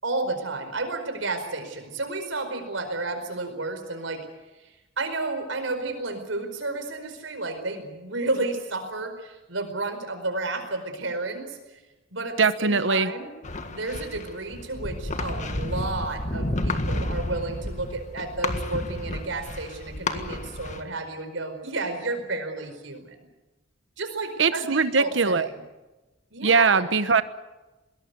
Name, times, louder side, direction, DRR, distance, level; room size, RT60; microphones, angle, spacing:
voice 1, 0.0-4.3 4.6-11.8 12.1-13.3 13.6-23.3 24.0-25.6 26.3-26.9, right 2 dB, 90° right, 7 dB, 4.9 m, -32 dB
voice 2, 12.4-13.1 24.4-25.5 26.4-27.2, right 4 dB, 70° right, 13 dB, 1.1 m, -21 dB
sound 1, 13.4-20.8, left 1 dB, 40° left, 1.7 m, -31 dB
22.0 x 18.5 x 9.6 m, 1.1 s
head